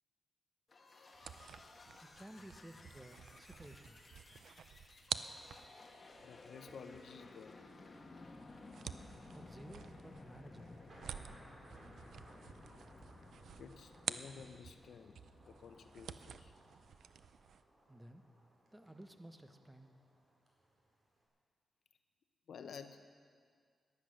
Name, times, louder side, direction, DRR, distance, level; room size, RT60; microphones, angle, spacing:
sound 1, 0.7-17.3, left 2 dB, 40° left, 1.7 m, -57 dB
sound 2, 1.1-14.8 15.1-17.6, right 7 dB, 80° right, 0.5 m, -49 dB
voice 1, 2.0-4.0 9.3-10.8 17.9-18.2 18.7-19.9, right 1 dB, 10° right, 7 dB, 1.1 m, -55 dB
voice 2, 6.2-7.6 13.6-15.2 15.5-16.5 22.5-23.1, left 6 dB, 75° left, 8 dB, 0.7 m, -52 dB
Thunder, 9.0-21.3, right 1 dB, 45° right, 4.3 m, -65 dB
18.0 x 12.0 x 6.4 m, 2.1 s
cardioid pair, 95°, 0 cm